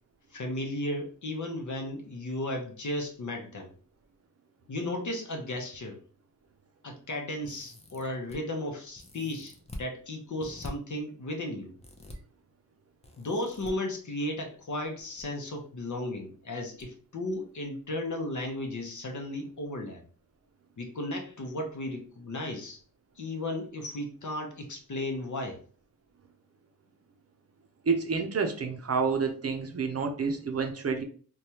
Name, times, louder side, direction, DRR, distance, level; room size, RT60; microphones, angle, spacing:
voice 1, 0.3-3.7 4.7-6.0 6.8-11.8 13.2-20.0 20.8-22.8 23.2-25.6, left 1 dB, 55° left, 3 dB, 0.8 m, -35 dB
sound 1, 7.4-8.4 8.9-9.9 10.4-10.7 11.8-12.2 13.0-13.7 14.8-15.2 15.5-15.6 16.8-16.9 17.3-17.4, left 1 dB, 20° left, 0.6 m, -45 dB
voice 2, 27.8-31.0, right 5 dB, 45° right, 4 dB, 0.5 m, -29 dB
3.2 x 2.3 x 2.8 m, 0.42 s
wide cardioid pair, 90°, 36 cm